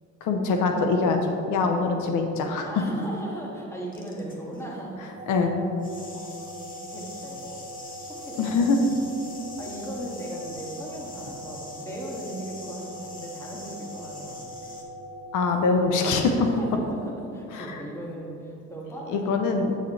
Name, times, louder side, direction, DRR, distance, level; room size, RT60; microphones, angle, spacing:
voice 1, 0.2-1.2 1.5-2.8 5.3-5.6 8.4-8.8 15.3-16.4 17.5-17.8 19.1-19.8, left 4 dB, 90° left, 4 dB, 0.7 m, -23 dB
voice 2, 2.6-5.0 6.1-7.9 8.2-8.8 9.3-14.5 16.4-19.3, right 1 dB, 10° left, -4 dB, 1.8 m, -38 dB
sound 1, 3.9-4.6 5.8-14.8, left 2 dB, 30° left, 1.2 m, -45 dB
sound 2, 5.2-16.4, equal, 30° right, 0.8 m, -41 dB
8.4 x 6.5 x 3.2 m, 2.6 s
cardioid pair, 90°, 30 cm